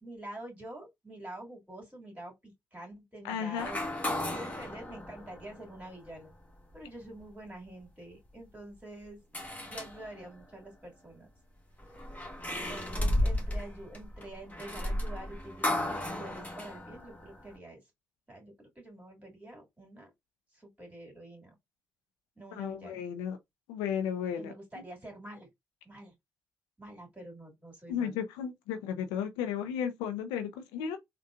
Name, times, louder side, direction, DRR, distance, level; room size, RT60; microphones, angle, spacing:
voice 1, 0.0-3.8 4.3-6.3 6.7-9.2 9.6-11.3 12.5-17.8 18.3-20.1 20.5-21.5 22.4-23.0 24.4-25.5 25.8-26.1 26.8-28.2, right 1 dB, 20° right, 2.3 m, -47 dB
voice 2, 3.2-3.7 22.5-23.4 23.7-24.5 27.9-31.0, left 8 dB, 90° left, 0.5 m, -34 dB
sound 1, 3.6-6.1 6.7-6.8 9.3-10.4 11.8-17.5, left 1 dB, 20° left, 1.3 m, -34 dB
3.7 x 2.2 x 2.5 m
hypercardioid pair, 45°, 7 cm